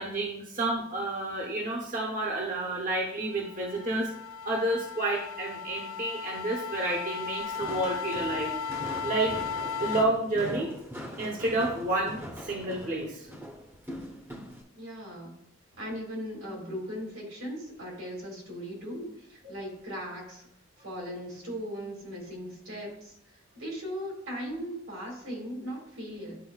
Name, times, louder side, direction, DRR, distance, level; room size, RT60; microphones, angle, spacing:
voice 1, 0.0-4.1 4.4-8.5 9.0-9.4 9.8-10.7 11.2-13.3, right 2 dB, 40° right, -2 dB, 0.9 m, -30 dB
sound 1, 3.2-10.0, left 6 dB, 75° left, 0.3 m, -36 dB
Walk footsteps, 7.4-14.6, equal, 10° right, 0.7 m, -41 dB
voice 2, 14.7-15.4 15.8-20.5 20.8-23.2 23.5-26.4, equal, 85° right, -1 dB, 2.2 m, -38 dB
10.5 x 4.2 x 2.3 m, 0.74 s
head